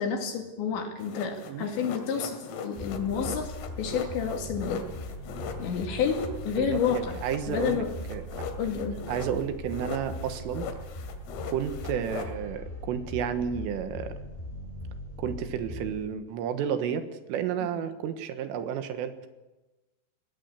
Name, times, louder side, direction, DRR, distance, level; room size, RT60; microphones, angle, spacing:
voice 1, 0.0-4.9 5.6-7.2 7.5-7.9 8.6-9.0, left 6 dB, 60° left, 3 dB, 4.5 m, -30 dB
sound 1, 1.0-9.4 9.7-12.3, left 6 dB, 80° left, 5.0 m, -39 dB
sound 2, 2.7-16.0, left 1 dB, 10° left, 3.7 m, -40 dB
voice 2, 6.6-8.2 9.1-10.7 11.5-14.1 15.2-19.3, right 8 dB, 75° right, 9 dB, 3.9 m, -31 dB
21.0 x 17.5 x 8.3 m, 1.1 s
omnidirectional pair, 6.0 m